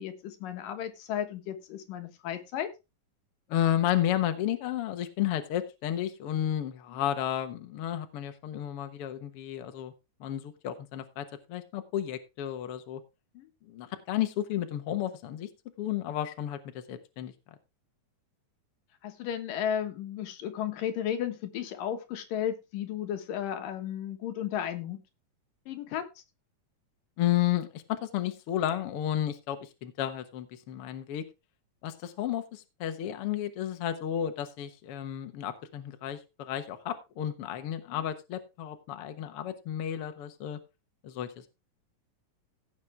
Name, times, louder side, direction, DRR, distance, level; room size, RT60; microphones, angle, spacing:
voice 1, 0.0-2.7 6.9-7.1 13.3-13.5 19.0-25.0 25.7-26.0 37.9-38.0, left 9 dB, 80° left, 7 dB, 2.9 m, -34 dB
voice 2, 3.5-9.9 10.2-13.0 13.7-15.5 15.8-17.3 27.2-31.2 31.8-40.6 41.0-41.5, left 11 dB, 60° left, 8 dB, 1.6 m, -32 dB
16.5 x 6.3 x 3.4 m, 0.26 s
omnidirectional pair, 3.9 m